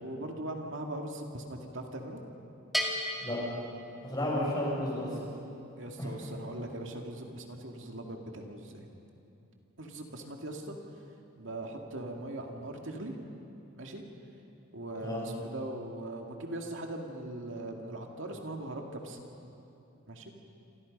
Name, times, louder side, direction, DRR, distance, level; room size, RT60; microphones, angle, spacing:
voice 1, 0.0-2.2 5.7-8.9 9.8-10.7 11.4-13.2 13.8-14.0 14.7-19.2 20.1-20.3, right 1 dB, 65° right, 2 dB, 2.4 m, -40 dB
Bell, 2.7-4.5, equal, ahead, 2.4 m, -35 dB
voice 2, 4.0-5.1 6.0-6.3 15.0-15.2, left 1 dB, 20° left, -4 dB, 7.2 m, -32 dB
27.5 x 27.0 x 5.4 m, 2.8 s
head